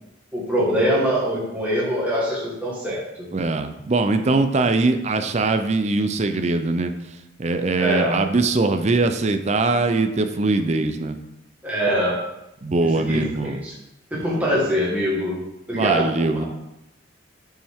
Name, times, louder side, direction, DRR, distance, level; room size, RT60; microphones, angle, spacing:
voice 1, 0.3-3.0 7.7-8.2 11.6-12.2 13.0-13.7 14.1-15.4 15.7-16.1 16.4-16.5, equal, 10° right, -7 dB, 1.5 m, -23 dB
voice 2, 3.3-11.2 12.6-13.6 14.3-14.5 15.7-16.4, right 3 dB, 35° right, 8 dB, 0.5 m, -22 dB
7.2 x 5.5 x 3.5 m, 0.90 s
head